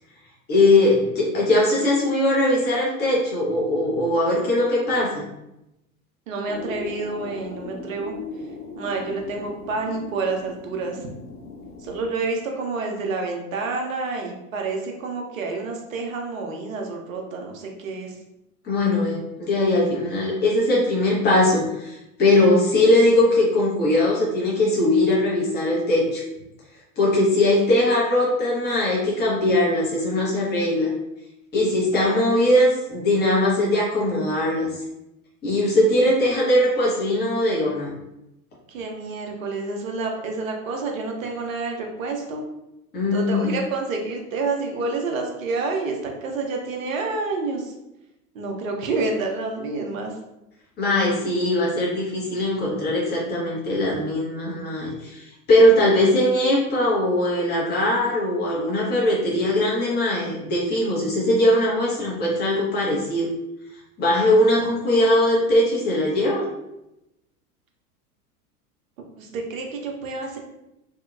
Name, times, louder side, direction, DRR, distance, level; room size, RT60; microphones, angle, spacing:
voice 1, 0.5-5.2 18.6-26.2 27.0-30.9 31.5-34.7 35.4-37.9 42.9-43.6 50.8-63.3 64.0-66.5, left 1 dB, 20° left, -4 dB, 1.0 m, -20 dB
voice 2, 6.3-8.1 8.8-11.0 11.8-18.1 31.9-32.5 38.7-42.4 43.1-47.7 48.3-50.1 64.5-65.0 69.2-70.4, right 3 dB, 60° right, 2 dB, 0.8 m, -29 dB
sound 1, 6.5-12.0, left 3 dB, 90° left, 0.7 m, -38 dB
2.8 x 2.7 x 2.4 m, 0.90 s
figure-of-eight pair, 85°, 44 cm